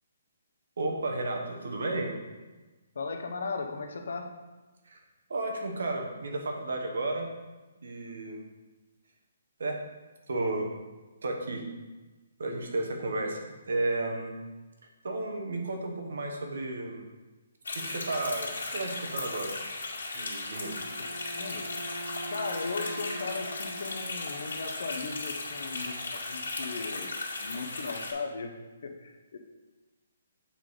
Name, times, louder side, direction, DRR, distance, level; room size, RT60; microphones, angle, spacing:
voice 1, 0.8-2.2 4.8-5.0 5.3-7.3 7.8-8.4 9.6-9.8 10.3-10.7 11.2-11.6 12.4-13.4 13.7-14.3 15.0-17.0 17.7-19.6 20.1-20.8, right 2 dB, 65° right, 2 dB, 1.2 m, -32 dB
voice 2, 2.9-4.3 21.0-21.1 21.3-21.8 22.3-28.6 28.8-29.4, left 4 dB, 55° left, 4 dB, 0.8 m, -37 dB
sound 1, 17.6-28.1, left 3 dB, 80° left, 2.0 m, -37 dB
Wind instrument woodwind instrument, 20.5-24.7, right 1 dB, 35° right, 1.0 m, -42 dB
7.1 x 3.8 x 4.8 m, 1.2 s
hypercardioid pair, 180°, 0 cm